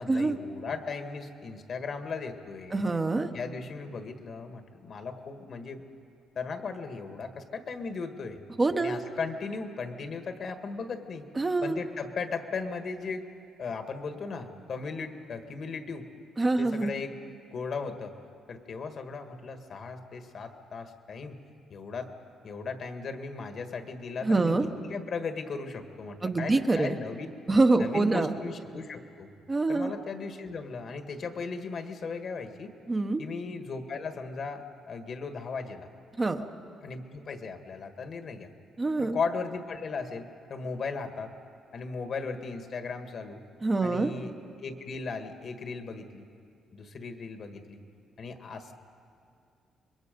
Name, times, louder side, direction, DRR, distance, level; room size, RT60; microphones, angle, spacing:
voice 1, 0.0-2.9 3.3-5.8 6.3-8.4 8.8-11.2 11.6-13.3 13.6-16.1 16.6-17.2 17.5-18.1 18.5-21.4 21.7-22.1 22.4-24.5 24.8-27.3 27.8-29.3 29.7-32.7 33.2-35.9 36.8-38.5 39.0-41.3 41.7-43.4 43.8-46.2 46.7-47.8 48.2-48.7, left 4 dB, 55° left, 7 dB, 1.6 m, -37 dB
voice 2, 2.7-3.3 8.6-9.0 11.4-11.8 16.4-16.9 24.2-24.7 26.2-27.0 27.5-28.3 29.5-29.9 32.9-33.2 36.2-36.4 38.8-39.2 43.6-44.1, right 3 dB, 25° right, 6 dB, 1.0 m, -25 dB
26.0 x 21.5 x 5.3 m, 2.4 s
cardioid pair, 90°, 0 cm